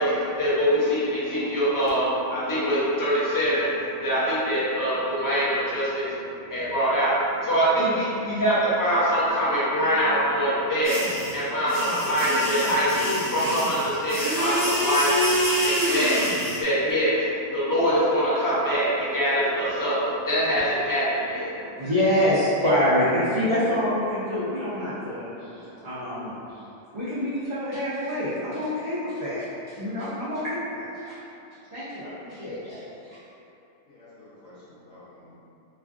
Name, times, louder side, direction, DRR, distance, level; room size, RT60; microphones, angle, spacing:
voice 1, 0.0-16.2 16.6-21.8, equal, 25° left, -10 dB, 0.4 m, -24 dB
sound 1, 10.8-16.6, equal, 25° right, 1.0 m, -27 dB
voice 2, 21.8-25.3 25.8-26.4 26.9-31.2 31.7-32.8 33.1-33.2, left 1 dB, 45° right, -13 dB, 0.3 m, -26 dB
voice 3, 33.9-35.3, left 2 dB, 70° left, -14 dB, 1.2 m, -50 dB
3.1 x 2.3 x 2.5 m, 2.7 s
omnidirectional pair, 1.4 m